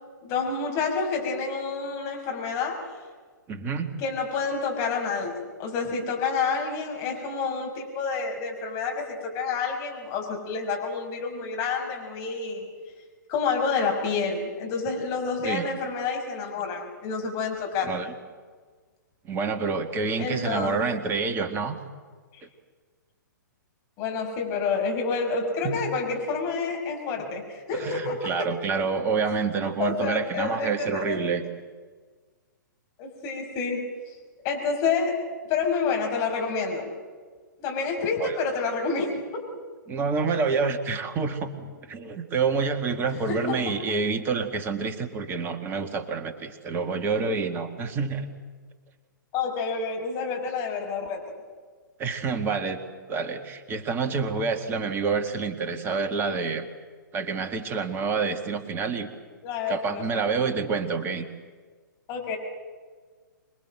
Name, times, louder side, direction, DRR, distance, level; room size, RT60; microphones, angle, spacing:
voice 1, 0.2-2.9 4.0-12.7 13.3-17.9 20.2-20.8 24.0-28.5 29.8-31.2 33.0-33.8 34.4-36.9 37.6-39.5 43.3-43.9 49.3-51.3 59.4-60.3 62.1-62.4, left 5 dB, 30° left, 1 dB, 5.8 m, -29 dB
voice 2, 3.5-3.9 15.4-15.6 17.8-18.1 19.2-21.7 22.4-22.5 25.6-25.8 27.7-31.4 38.2-38.4 39.9-48.3 52.0-52.8 53.1-56.6 57.1-59.1 59.7-61.3, right 5 dB, 20° right, 7 dB, 1.8 m, -28 dB
26.5 x 22.0 x 7.8 m, 1.5 s
figure-of-eight pair, 115°, 11 cm